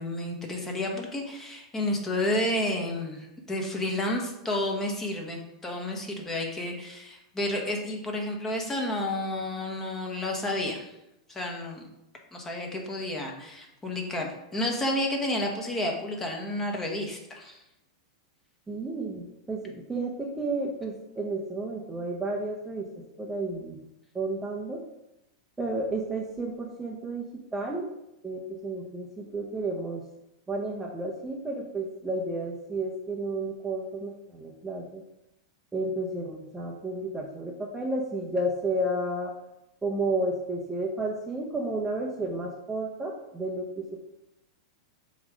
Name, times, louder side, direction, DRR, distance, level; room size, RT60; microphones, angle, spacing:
voice 1, 0.0-10.9 11.3-11.9 12.3-17.6, left 1 dB, 15° left, 1 dB, 1.2 m, -31 dB
voice 2, 18.7-22.9 23.2-23.8 24.1-24.8 25.6-27.2 27.5-27.9 28.2-30.0 30.5-35.0 35.7-39.3 39.8-44.1, right 2 dB, 10° right, -2 dB, 0.7 m, -32 dB
7.2 x 3.1 x 5.0 m, 0.86 s
supercardioid pair, 135°, 3 cm